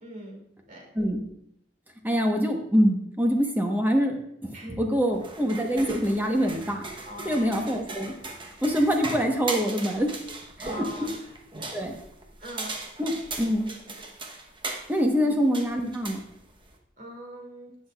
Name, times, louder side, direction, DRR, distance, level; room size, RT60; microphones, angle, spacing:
voice 1, 0.0-0.9 4.5-4.7 7.0-7.7 10.6-11.2 11.6-11.8 12.4-12.9 13.1-13.2 13.9-14.0 15.2-15.3 17.0-17.7, equal, 45° right, 0 dB, 2.5 m, -42 dB
voice 2, 2.0-4.5 4.8-6.8 7.2-8.1 8.6-10.2 10.6-10.9 11.7-11.9 13.0-13.7 14.9-16.2, equal, 10° right, 2 dB, 1.2 m, -25 dB
sound 1, 5.1-16.8, right 2 dB, 25° right, 1.0 m, -38 dB
17.5 x 6.3 x 2.4 m, 0.72 s
head